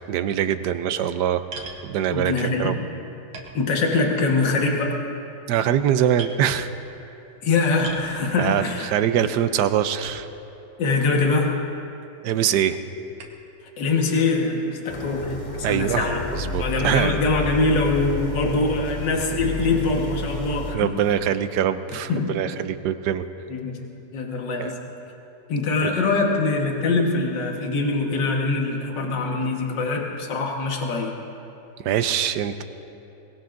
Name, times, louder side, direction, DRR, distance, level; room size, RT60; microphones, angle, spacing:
voice 1, 0.1-1.4 1.9-2.7 5.5-6.7 8.4-10.3 12.2-12.8 15.6-16.1 16.3-17.2 20.7-23.2 24.6-24.7 25.8-25.9 31.8-32.6, right 10 dB, 70° right, 11 dB, 1.1 m, -23 dB
sound 1, 1.5-1.9 2.7-2.8 3.3-4.2 4.5-4.9 5.5-5.8 6.2-6.4 7.8-8.2 10.0-10.5 11.2-11.3 13.2-13.5, right 3 dB, 85° right, 2.1 m, -39 dB
voice 2, 2.1-2.9 3.5-5.0 7.4-8.9 10.8-11.7 13.8-15.4 15.7-16.2 16.6-20.9 22.1-22.5 23.5-23.8 24.1-24.8 25.5-31.2, left 3 dB, 65° left, 1 dB, 2.0 m, -23 dB
sound 2, 14.9-20.7, left 1 dB, 20° left, 2.3 m, -31 dB
22.5 x 20.5 x 2.6 m, 2.9 s
omnidirectional pair, 2.1 m